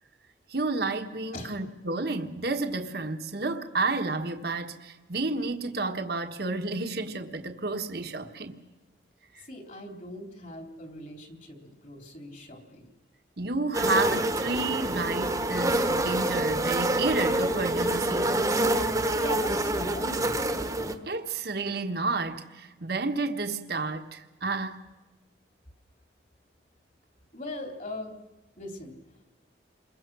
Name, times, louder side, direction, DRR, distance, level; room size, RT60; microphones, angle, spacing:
voice 1, 0.5-8.6 13.4-18.6 21.0-24.8, right 3 dB, 55° right, 1.4 m, -31 dB
voice 2, 9.5-12.9 19.2-20.4 27.3-28.1 28.6-29.0, left 1 dB, 45° left, 3.4 m, -40 dB
sound 1, 13.7-20.9, right 1 dB, 15° right, 1.3 m, -26 dB
28.0 x 22.5 x 6.2 m
head